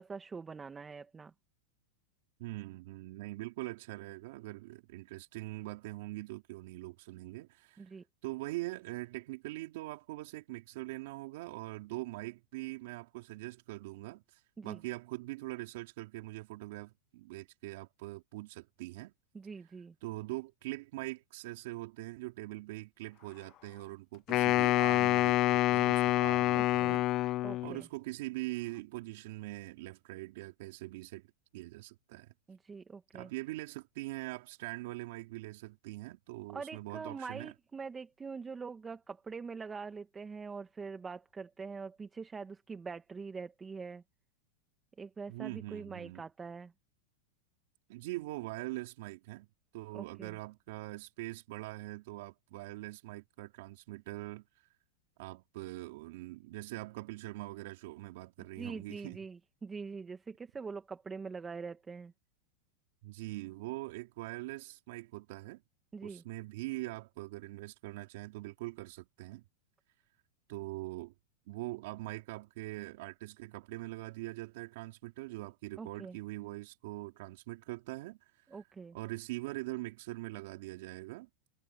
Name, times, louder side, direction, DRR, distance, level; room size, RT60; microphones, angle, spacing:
voice 1, 0.0-1.3 7.8-8.0 14.6-14.8 19.3-19.9 26.5-27.0 27.4-27.9 32.5-33.3 36.5-44.0 45.0-46.7 49.9-50.4 58.6-62.1 65.9-66.2 75.8-76.2 78.5-79.0, right 5 dB, 15° right, 2.1 m, -44 dB
voice 2, 2.4-7.9 8.2-19.1 20.0-27.1 27.6-31.3 31.5-32.3 33.1-37.5 45.3-46.2 47.9-49.5 49.7-54.4 55.2-59.2 63.0-65.6 66.0-69.4 70.5-71.1 71.5-78.6 78.9-81.5, right 20 dB, 65° right, 3.7 m, -43 dB
Wind instrument woodwind instrument, 24.3-27.8, left 16 dB, 40° left, 0.8 m, -27 dB
hypercardioid pair, 120°, 0 cm